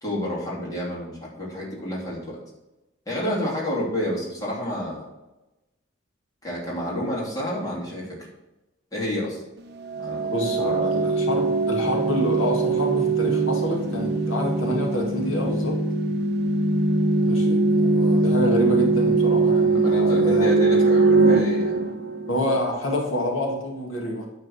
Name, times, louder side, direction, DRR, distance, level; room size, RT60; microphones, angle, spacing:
voice 1, 0.0-2.4 3.1-5.1 6.4-8.3 8.9-9.4 10.0-10.7 19.7-21.8, left 1 dB, 20° left, -5 dB, 2.8 m, -29 dB
sound 1, 9.9-22.6, right 3 dB, 55° right, 0.8 m, -21 dB
voice 2, 10.3-15.8 17.2-20.6 22.3-24.3, left 1 dB, 85° left, 0 dB, 1.9 m, -27 dB
9.6 x 3.9 x 6.3 m, 1.0 s
head